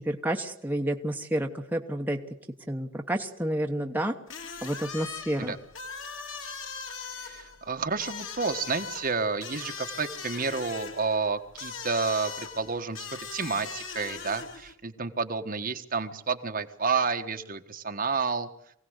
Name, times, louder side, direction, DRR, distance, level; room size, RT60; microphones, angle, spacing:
voice 1, 0.0-2.2 2.7-4.1 4.6-5.6, right 1 dB, 10° right, 3 dB, 1.1 m, -30 dB
sound 1, 4.3-14.7, left 5 dB, 75° left, 2.4 m, -40 dB
voice 2, 7.2-18.5, right 4 dB, 45° right, 6 dB, 1.5 m, -30 dB
24.0 x 17.0 x 8.1 m, 0.73 s
head